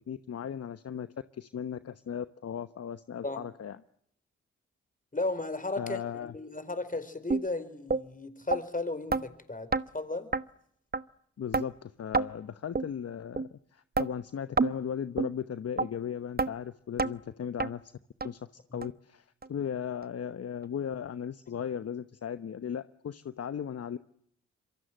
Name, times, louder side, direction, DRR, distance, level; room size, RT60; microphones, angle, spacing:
voice 1, 0.1-1.1 1.3-3.8 5.8-6.3 11.4-17.9 18.2-18.4 18.7-24.0, left 8 dB, 55° left, 13 dB, 1.0 m, -37 dB
voice 2, 5.1-10.3, left 2 dB, 30° left, 12 dB, 4.8 m, -35 dB
sound 1, 7.3-7.4 7.9-8.0 8.5-8.6 9.1-9.2 9.7-9.9 10.3-10.4 10.9-11.0 11.5-11.7 12.1-12.3 12.8-12.9 13.4-13.5 14.0-14.1 14.6-14.7 15.2-15.3 15.8-15.9 16.4-16.5 17.0-17.1 17.6-17.7 18.2-18.3 18.8-18.9 19.4-19.5 20.0-20.1, right 4 dB, 35° right, 1.1 m, -27 dB
27.0 x 23.5 x 7.7 m, 0.71 s
supercardioid pair, 40°, 29 cm